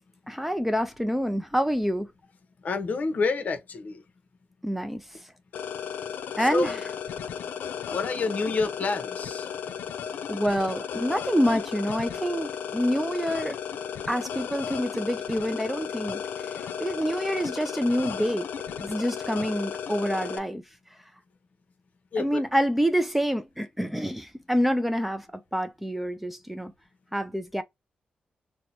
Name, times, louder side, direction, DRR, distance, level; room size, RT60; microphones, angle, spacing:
voice 1, 0.3-2.1 4.6-5.0 6.4-6.7 10.3-13.6 14.1-18.5 18.8-20.6 22.2-26.7 27.1-27.6, equal, 5° right, 0.4 m, -27 dB
voice 2, 2.6-4.0 6.4-6.8 7.9-9.5 16.6-16.7 22.1-22.4, left 4 dB, 55° left, 0.9 m, -28 dB
sound 1, 5.5-20.4, left 8 dB, 90° left, 0.5 m, -34 dB
2.8 x 2.1 x 4.0 m
cardioid pair, 85°, 3 cm